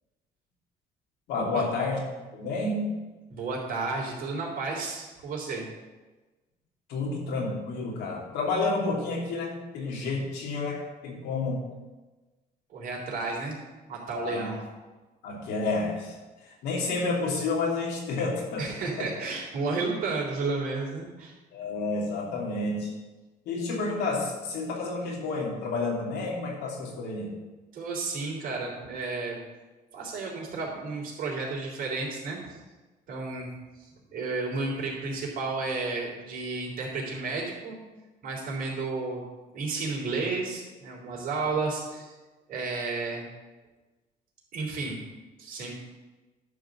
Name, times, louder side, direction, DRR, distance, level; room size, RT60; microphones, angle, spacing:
voice 1, 1.3-2.0 2.3-2.9 6.9-11.6 14.1-14.5 15.2-16.1 16.4-18.7 21.5-22.9 23.5-27.3, left 3 dB, 85° left, -2 dB, 2.7 m, -30 dB
voice 2, 3.3-5.7 12.7-13.6 13.9-14.6 18.6-21.3 27.7-29.4 29.9-32.6 33.1-33.5 34.1-37.8 38.2-39.2 39.5-42.1 42.5-43.2 44.5-45.0 45.4-45.7, right 3 dB, 55° right, -3 dB, 3.4 m, -32 dB
11.0 x 4.0 x 7.7 m, 1.2 s
cardioid pair, 110°, 17 cm